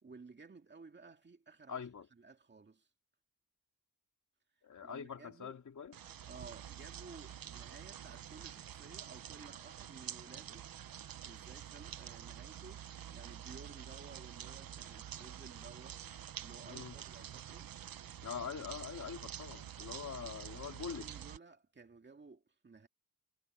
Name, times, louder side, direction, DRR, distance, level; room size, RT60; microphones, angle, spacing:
voice 1, 0.0-1.8 2.1-2.9 4.8-5.6 6.3-10.7 11.2-16.0 16.4-17.7 20.2-20.4 20.9-22.9, right 4 dB, 30° right, 2.3 m, -55 dB
voice 2, 1.7-2.1 4.6-5.9 16.7-16.9 18.2-21.1, left 7 dB, 50° left, 2.9 m, -44 dB
sound 1, 5.9-21.4, right 10 dB, 65° right, 1.1 m, -48 dB
wide cardioid pair, 150°, 37 cm